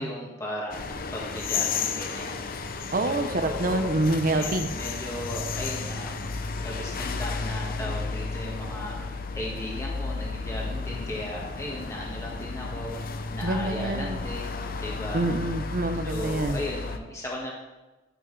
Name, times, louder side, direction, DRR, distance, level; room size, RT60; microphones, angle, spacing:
voice 1, 0.0-2.8 3.0-3.9 4.3-6.2 6.6-15.2 16.0-17.5, left 1 dB, 15° left, -4 dB, 1.5 m, -36 dB
sound 1, 0.7-17.0, left 4 dB, 50° left, 0.7 m, -33 dB
voice 2, 2.9-4.7 13.4-14.2 15.1-16.6, right 2 dB, 50° right, 8 dB, 0.8 m, -26 dB
11.5 x 9.1 x 3.3 m, 1.1 s
head